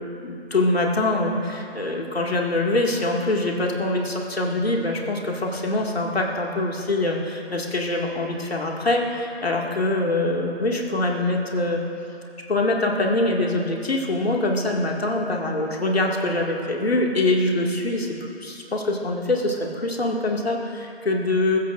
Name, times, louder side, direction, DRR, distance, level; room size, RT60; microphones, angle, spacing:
voice 1, 0.0-11.8 12.4-18.1 18.4-21.6, left 2 dB, 70° left, 0 dB, 2.2 m, -24 dB
25.5 x 15.5 x 2.6 m, 2.7 s
figure-of-eight pair, 145°, 32 cm